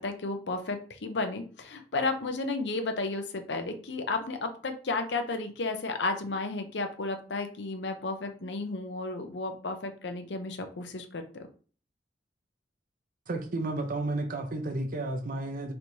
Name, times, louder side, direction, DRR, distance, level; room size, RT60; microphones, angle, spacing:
voice 1, 0.0-11.4, left 3 dB, 75° left, 7 dB, 0.7 m, -33 dB
voice 2, 13.3-15.7, right 2 dB, 50° right, 5 dB, 0.6 m, -32 dB
4.5 x 3.3 x 2.7 m, 0.40 s
head